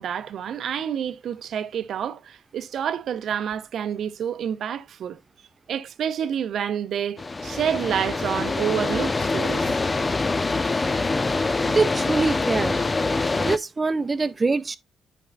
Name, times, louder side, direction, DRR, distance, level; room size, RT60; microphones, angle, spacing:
voice 1, 0.0-5.2 5.7-9.8, right 8 dB, 65° right, 0.7 m, -28 dB
sound 1, 7.2-13.6, left 3 dB, 25° left, 0.4 m, -25 dB
voice 2, 11.7-12.8 13.4-14.8, right 3 dB, 25° right, 0.6 m, -24 dB
12.0 x 5.2 x 2.5 m
cardioid pair, 110°, 0 cm